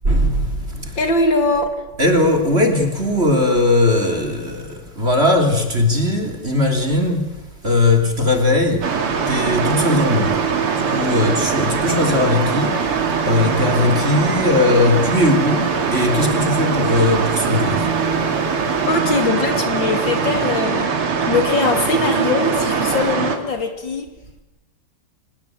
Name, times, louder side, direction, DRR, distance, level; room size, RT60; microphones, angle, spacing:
voice 1, 0.0-1.1 2.0-7.2 7.6-8.9 9.3-10.4 10.9-12.7 13.2-17.9, left 2 dB, 30° right, 4 dB, 3.3 m, -18 dB
voice 2, 1.0-1.7 18.9-24.1, left 3 dB, 60° left, 6 dB, 3.4 m, -21 dB
sound 1, 8.8-23.4, right 5 dB, 80° right, 3.1 m, -21 dB
26.0 x 18.5 x 9.2 m, 1.1 s
omnidirectional pair, 2.4 m